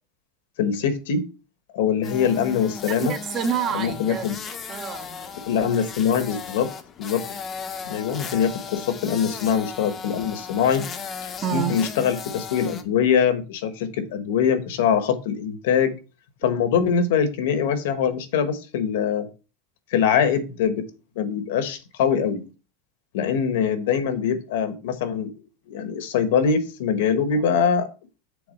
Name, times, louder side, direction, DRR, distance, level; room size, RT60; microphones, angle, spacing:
voice 1, 0.6-1.3 1.7-3.1 3.7-4.3 5.5-6.7 7.0-7.2 7.8-10.9 11.2-16.0 16.4-19.3 19.9-20.9 21.1-22.4 23.1-25.3 25.7-27.9, left 7 dB, 75° left, 1.3 m, -23 dB
sound 1, 2.0-12.8, left 6 dB, 25° left, 0.7 m, -36 dB
voice 2, 2.9-5.8 11.4-11.8 27.3-27.4, right 8 dB, 30° right, 0.8 m, -29 dB
7.0 x 4.0 x 5.3 m
supercardioid pair, 160°, 0 cm